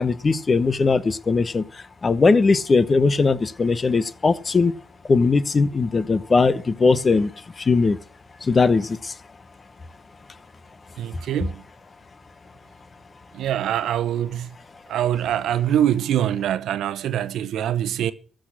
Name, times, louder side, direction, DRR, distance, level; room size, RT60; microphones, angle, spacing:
voice 1, 0.0-4.7 5.1-7.3 7.6-8.0 8.4-9.1, left 4 dB, 30° left, 0.9 m, -19 dB
voice 2, 11.0-11.6 13.3-14.5 14.9-18.1, right 11 dB, 75° right, 0.8 m, -24 dB
14.5 x 6.5 x 7.4 m
cardioid pair, 90°, 0 cm